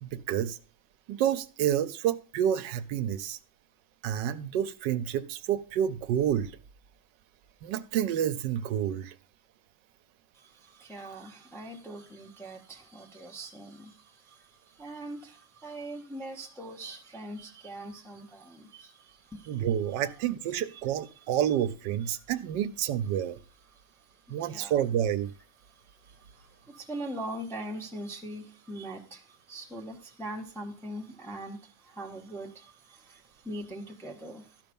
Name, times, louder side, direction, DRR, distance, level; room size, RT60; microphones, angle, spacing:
voice 1, 0.0-0.6 1.1-3.4 4.0-6.5 7.6-9.2 19.5-23.4 24.3-25.3, right 10 dB, 75° right, 1.2 m, -29 dB
voice 2, 10.3-19.7 20.0-20.3 20.7-20.8 21.2-21.3 23.7-24.7 25.7-34.6, right 1 dB, ahead, 1.0 m, -42 dB
12.0 x 5.8 x 5.2 m
omnidirectional pair, 2.1 m